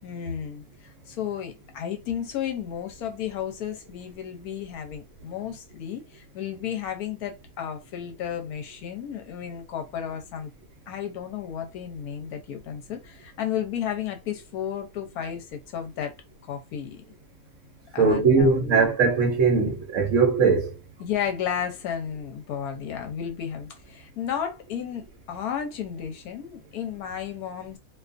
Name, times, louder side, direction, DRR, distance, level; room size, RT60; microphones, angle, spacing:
voice 1, 0.0-10.5 10.9-16.1 16.5-17.0 17.9-19.0 19.6-19.7 21.0-27.8, left 9 dB, 80° left, 1.1 m, -33 dB
voice 2, 18.0-20.7, right 4 dB, 65° right, 0.9 m, -20 dB
2.5 x 2.4 x 2.4 m
omnidirectional pair, 1.6 m